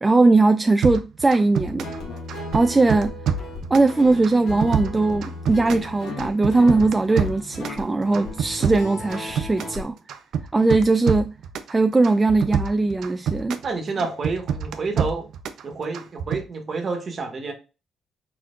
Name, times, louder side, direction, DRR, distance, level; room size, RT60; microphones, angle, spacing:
voice 1, 0.0-1.9 2.5-3.1 3.7-10.0 10.5-11.3 11.7-13.6, right 3 dB, 20° right, 0.3 m, -19 dB
sound 1, 0.8-2.0 2.3-3.9 4.2-5.9 6.2-7.8 8.1-9.8 10.1-11.7 12.0-13.7 14.0-15.6 15.9-16.4, right 7 dB, 75° right, 0.6 m, -26 dB
Guitar, 1.5-9.8, left 2 dB, 75° left, 1.4 m, -36 dB
voice 2, 13.6-15.3 15.6-17.5, right 4 dB, 45° right, 1.2 m, -29 dB
4.4 x 4.1 x 2.5 m
cardioid pair, 90°, 0 cm